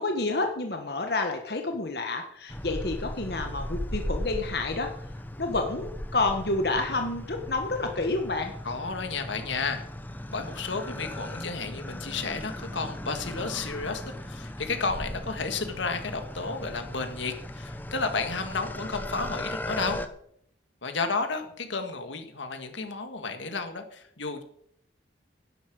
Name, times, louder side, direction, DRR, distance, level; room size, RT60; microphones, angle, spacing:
voice 1, 0.0-4.9 5.4-8.5, left 3 dB, 55° left, 4 dB, 1.5 m, -29 dB
sound 1, 2.5-20.1, left 1 dB, 10° left, 0.7 m, -37 dB
voice 2, 8.6-9.9 10.3-20.0 20.8-24.4, left 4 dB, 80° left, 7 dB, 1.8 m, -32 dB
12.0 x 10.0 x 6.2 m, 0.67 s
head